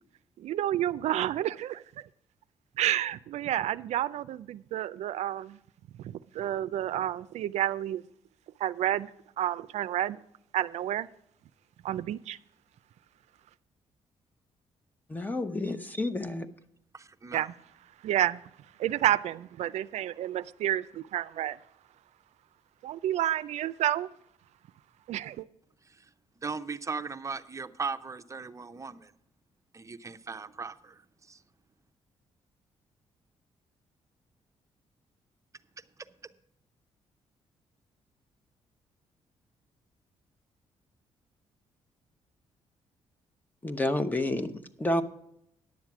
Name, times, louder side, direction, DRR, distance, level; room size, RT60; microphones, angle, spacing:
voice 1, 0.4-2.1 2.8-5.6 6.0-8.0 8.6-9.1 9.4-10.2 10.5-11.1 11.8-12.4 17.3-17.5 18.0-18.4 18.8-21.6 22.8-24.1 25.1-25.5, right 12 dB, 75° right, 14 dB, 0.4 m, -30 dB
voice 2, 15.1-16.5 43.6-45.0, left 1 dB, 15° left, 10 dB, 0.9 m, -30 dB
voice 3, 16.9-17.4 26.4-29.1 29.7-31.0 31.3-31.4, right 4 dB, 25° right, 10 dB, 0.6 m, -37 dB
10.5 x 7.3 x 6.0 m, 0.76 s
cardioid pair, 85°, 12 cm